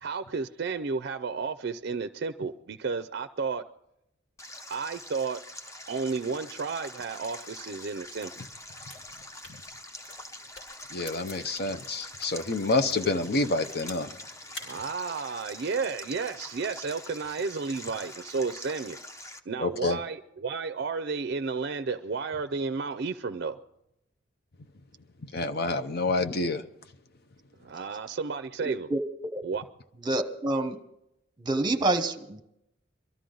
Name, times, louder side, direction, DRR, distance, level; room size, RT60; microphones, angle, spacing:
voice 1, 0.0-3.6 4.7-5.4 5.9-8.3 14.6-19.0 19.5-23.6 27.6-28.9 29.4-29.6, right 4 dB, 60° right, 11 dB, 0.4 m, -32 dB
Stream, 4.4-19.4, left 1 dB, 15° left, 0.8 m, -45 dB
sound 1, 8.0-12.4 12.8-14.2 14.5-14.8, left 1 dB, 85° left, 4.7 m, -46 dB
voice 2, 10.9-14.1 19.6-20.0 25.3-26.6, left 3 dB, 55° left, 9 dB, 0.8 m, -28 dB
voice 3, 28.6-29.0 30.0-30.8 31.4-32.4, right 2 dB, 25° right, 8 dB, 0.9 m, -27 dB
23.0 x 13.0 x 3.9 m, 0.81 s
head